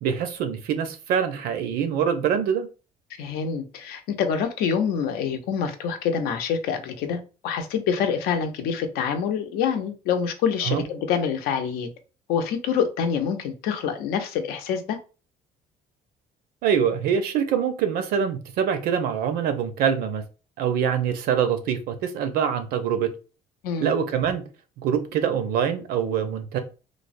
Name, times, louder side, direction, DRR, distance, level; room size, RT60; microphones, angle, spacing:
voice 1, 0.0-2.7 10.6-10.8 16.6-20.2 20.6-23.1 23.8-24.4 24.8-26.6, right 8 dB, 75° right, 0.6 m, -24 dB
voice 2, 3.2-11.9 12.3-15.0 23.6-23.9, left 7 dB, 90° left, 0.6 m, -26 dB
3.2 x 2.0 x 2.5 m
cardioid pair, 130°, 16 cm